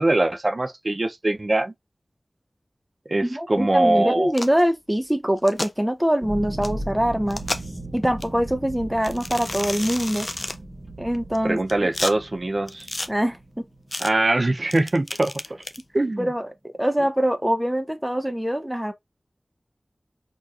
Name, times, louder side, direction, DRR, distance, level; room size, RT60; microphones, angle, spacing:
voice 1, 0.0-1.7 3.1-4.3 11.4-12.9 14.0-15.6 15.9-16.3, right 2 dB, 50° right, 0.5 m, -22 dB
voice 2, 3.2-7.4 7.9-10.3 11.0-11.9 13.1-13.4 16.2-16.5 16.8-18.9, equal, 10° right, 0.7 m, -23 dB
sound 1, 4.3-4.6 5.4-5.7 6.6-6.7 7.3-7.8 8.2-8.3 9.0-10.6 11.3-12.1 12.7-13.1 13.9-14.1 14.7-15.8, left 2 dB, 45° left, 0.4 m, -31 dB
sound 2, 6.2-14.4, right 1 dB, 35° right, 1.1 m, -37 dB
4.4 x 2.9 x 2.4 m
wide cardioid pair, 45°, 0 cm